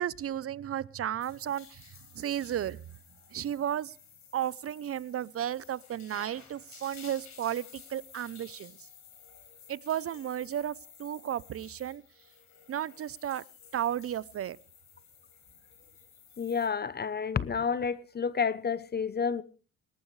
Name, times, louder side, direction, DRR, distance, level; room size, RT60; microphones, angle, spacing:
voice 1, 0.0-1.9 2.1-2.8 3.3-3.9 4.3-8.8 9.7-12.0 12.7-13.4 13.7-14.6, right 10 dB, 50° right, 0.7 m, -33 dB
sound 1, 1.2-16.7, left 7 dB, 65° left, 5.2 m, -54 dB
voice 2, 16.4-19.4, left 6 dB, 35° left, 0.8 m, -30 dB
19.5 x 18.5 x 3.2 m
cardioid pair, 90°, 30 cm